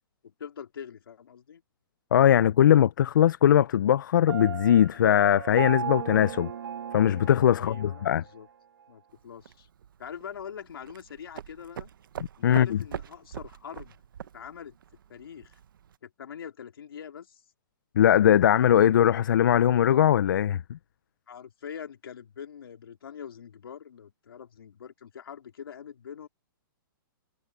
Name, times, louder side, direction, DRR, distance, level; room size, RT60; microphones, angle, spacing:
voice 1, 0.2-1.6 7.6-8.5 8.9-9.7 10.0-11.9 12.4-13.9 14.3-14.7 15.1-15.6 16.0-17.4 21.3-26.3, left 8 dB, 90° left, 3.3 m, -43 dB
voice 2, 2.1-6.5 6.9-8.2 12.4-12.8 18.0-20.8, left 10 dB, 60° left, 0.4 m, -20 dB
Piano, 4.3-8.1, right 8 dB, 85° right, 1.5 m, -36 dB
sound 1, 9.1-16.0, right 9 dB, 65° right, 0.9 m, -44 dB
hypercardioid pair, 175°, 12 cm